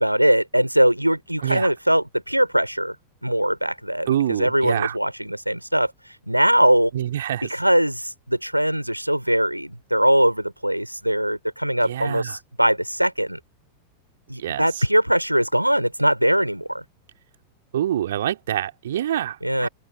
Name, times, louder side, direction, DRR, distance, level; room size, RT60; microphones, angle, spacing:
voice 1, 0.0-3.0 3.2-5.9 6.3-6.9 7.4-13.4 14.3-16.8 19.4-19.7, right 1 dB, 90° right, 3.6 m, -21 dB
voice 2, 4.1-5.0 6.9-7.5 11.8-12.3 14.4-14.7 17.7-19.7, right 11 dB, 60° right, 2.7 m, -26 dB
open air
figure-of-eight pair, 90°, 0 cm